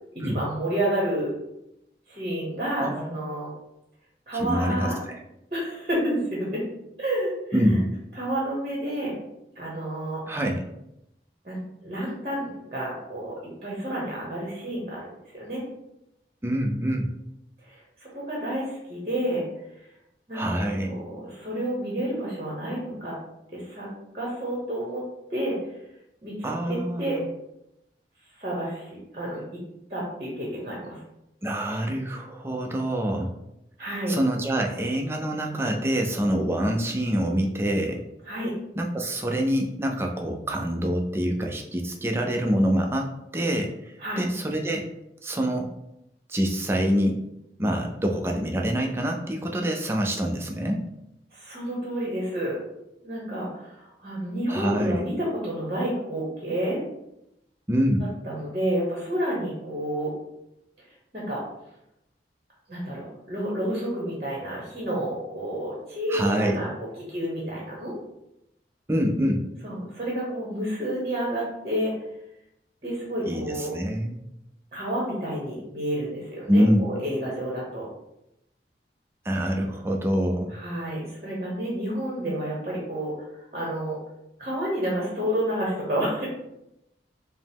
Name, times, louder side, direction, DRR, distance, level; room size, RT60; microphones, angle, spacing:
voice 1, 0.1-1.3 2.1-3.5 4.3-5.0 5.5-6.6 7.0-7.8 8.2-9.1 9.6-10.4 11.4-13.3 13.6-15.6 17.6-19.5 20.3-23.2 23.5-23.9 24.1-25.0 25.3-25.8 26.2-27.2 28.4-29.6 29.9-31.0 33.8-34.2 38.2-38.5 44.0-44.2 51.3-52.6 53.0-56.8 58.2-60.1 61.1-61.4 62.7-67.9 69.6-71.9 72.8-73.7 74.7-77.9 80.5-83.1 83.5-84.0 84.4-86.3, right 1 dB, 35° right, -4 dB, 0.9 m, -30 dB
voice 2, 2.8-3.2 4.3-5.2 7.5-7.9 10.3-10.6 16.4-17.1 20.3-20.9 26.4-27.2 31.4-33.3 34.1-38.0 38.8-43.7 44.2-44.9 45.2-45.7 46.3-47.2 47.6-50.8 54.5-55.0 57.7-58.0 66.1-66.7 68.9-69.4 73.3-74.2 76.5-76.9 79.3-80.5, equal, 15° right, 2 dB, 0.4 m, -25 dB
5.0 x 2.0 x 3.5 m, 0.85 s
head